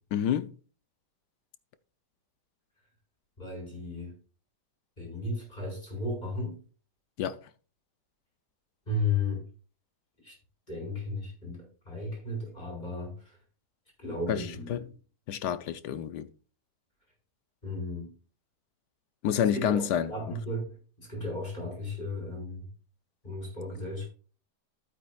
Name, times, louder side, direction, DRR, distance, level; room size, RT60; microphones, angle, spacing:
voice 1, 0.1-0.5 7.2-7.4 14.3-14.8 15.3-16.3 19.2-20.1, left 9 dB, 75° left, 1.3 m, -28 dB
voice 2, 3.4-4.1 5.0-6.6 8.9-9.5 10.2-10.3 10.7-13.4 14.0-14.8 17.6-18.1 19.5-22.7 23.2-24.1, left 2 dB, 25° left, 5.1 m, -34 dB
15.0 x 8.6 x 2.3 m
omnidirectional pair, 1.8 m